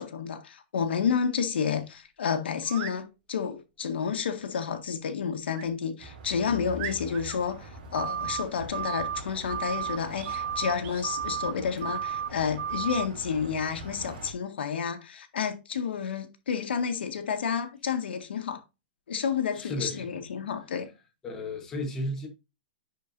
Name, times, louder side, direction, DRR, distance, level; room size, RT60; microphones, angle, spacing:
voice 1, 0.0-18.6 19.1-20.9, left 7 dB, 80° left, 1.7 m, -30 dB
sound 1, 2.6-3.0 5.5-5.7 6.3-6.4 6.8-7.4 10.1-10.4 10.8-11.1, right 10 dB, 20° right, 0.6 m, -40 dB
sound 2, 6.0-14.3, right 2 dB, 50° right, 3.0 m, -44 dB
sound 3, 8.0-8.4 8.7-9.2 9.5-10.0 10.3-10.7 11.0-11.5 11.8-12.3 12.6-13.1, right 8 dB, 65° right, 0.4 m, -32 dB
voice 2, 19.5-20.1 20.4-20.5 21.2-22.3, left 1 dB, 10° left, 1.2 m, -34 dB
10.5 x 4.5 x 2.7 m
hypercardioid pair, 180°, 6 cm